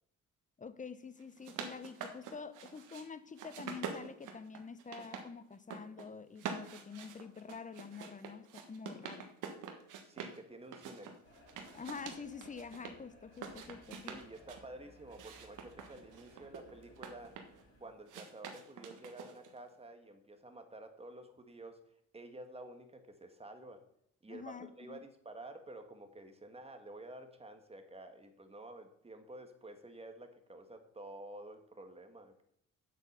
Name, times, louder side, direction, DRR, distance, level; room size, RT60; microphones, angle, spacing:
voice 1, 0.6-9.3 11.7-14.2 24.3-25.0, left 5 dB, 25° left, 0.9 m, -47 dB
sound 1, 1.2-3.0 3.4-5.3 5.5-6.1 6.4-10.4 10.7-12.9 13.3-14.6 15.1-17.6 18.1-19.6, right 6 dB, 85° right, 1.6 m, -46 dB
voice 2, 10.0-11.1 14.1-17.4 17.8-21.8 22.1-23.8 24.2-32.4, right 2 dB, 20° right, 1.8 m, -51 dB
sound 2, 11.2-17.9, equal, 45° left, 4.0 m, -61 dB
7.9 x 7.8 x 6.7 m
cardioid pair, 90°, 30 cm